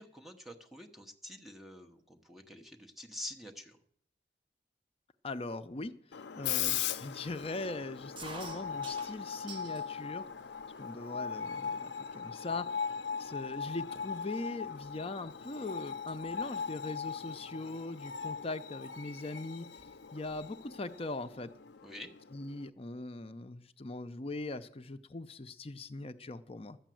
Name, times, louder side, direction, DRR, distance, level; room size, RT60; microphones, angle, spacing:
voice 1, 0.0-3.8 21.8-22.1, left 1 dB, ahead, 2 dB, 1.0 m, -47 dB
voice 2, 5.2-5.9 6.3-10.2 10.8-12.8 13.2-19.7 20.1-21.5 22.3-26.8, left 2 dB, 35° left, 10 dB, 0.6 m, -41 dB
Screech, 6.1-22.7, left 7 dB, 75° left, 0.5 m, -39 dB
sound 1, 8.2-9.9 10.3-11.0 11.6-11.7 12.0-12.4 13.0-13.1 13.3-15.6 15.9-16.2 17.5-17.8 18.9-19.0 19.2-19.3 19.6-20.4, right 3 dB, 30° right, 1.6 m, -50 dB
12.5 x 8.1 x 7.6 m, 0.64 s
head